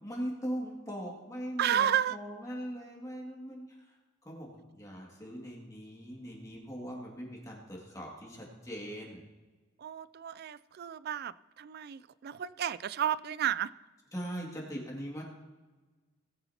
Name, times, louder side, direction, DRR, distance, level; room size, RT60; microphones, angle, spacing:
voice 1, 0.0-3.8 4.3-9.2 14.1-15.2, equal, 15° left, -3 dB, 2.2 m, -40 dB
voice 2, 1.6-2.2 9.8-13.7, right 9 dB, 50° right, 18 dB, 0.3 m, -32 dB
18.5 x 9.9 x 2.9 m, 1.3 s
head